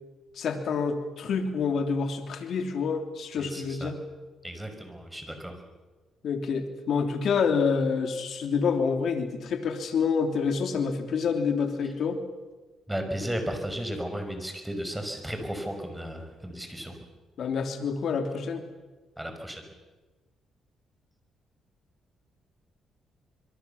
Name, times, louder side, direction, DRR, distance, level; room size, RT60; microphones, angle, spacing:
voice 1, 0.3-4.0 6.2-12.2 17.4-18.6, left 5 dB, 65° left, 6 dB, 3.2 m, -27 dB
voice 2, 3.4-3.9 4.4-5.5 12.9-17.0 19.2-19.6, equal, 5° right, 5 dB, 5.7 m, -34 dB
25.5 x 23.0 x 7.1 m, 1.3 s
cardioid pair, 90°, 0 cm